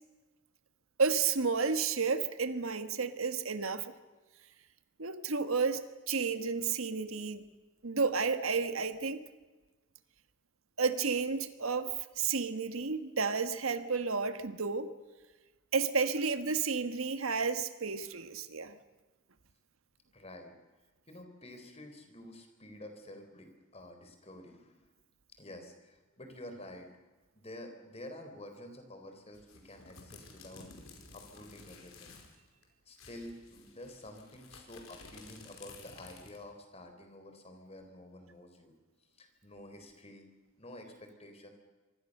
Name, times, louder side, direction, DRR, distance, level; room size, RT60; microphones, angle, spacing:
voice 1, 1.0-3.9 5.0-7.4 7.8-9.2 10.8-14.9 15.7-18.8, right 5 dB, 85° right, 10 dB, 1.5 m, -31 dB
voice 2, 20.1-20.5 21.1-24.9 25.4-26.9 27.3-32.2 32.9-38.7 39.2-40.3 40.6-41.5, left 1 dB, 30° left, 6 dB, 4.1 m, -50 dB
sound 1, 29.3-32.4 32.6-32.7 33.0-36.5, left 3 dB, 85° left, 4.9 m, -53 dB
26.5 x 24.0 x 6.7 m, 1.2 s
head